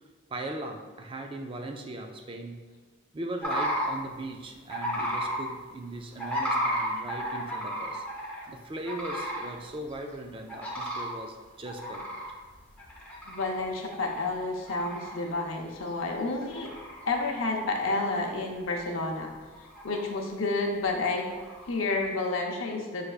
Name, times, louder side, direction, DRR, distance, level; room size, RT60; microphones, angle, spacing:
voice 1, 0.3-2.7 3.1-8.0 8.5-12.1, right 1 dB, 25° right, 3 dB, 0.4 m, -39 dB
sound 1, 3.4-3.9 4.7-5.4 6.2-8.5 8.8-9.5 9.9-10.0 10.5-11.1 11.6-13.6 13.9-14.3 14.7-15.2 15.7-15.8 16.3-17.1 17.7-18.4 18.7-19.2 19.5-20.1 21.2-21.8, equal, 5° left, 0.8 m, -33 dB
voice 2, 13.3-16.7 17.1-19.3 19.8-21.3 21.7-23.1, left 3 dB, 85° left, 1 dB, 0.7 m, -30 dB
6.3 x 3.3 x 2.4 m, 1.4 s
head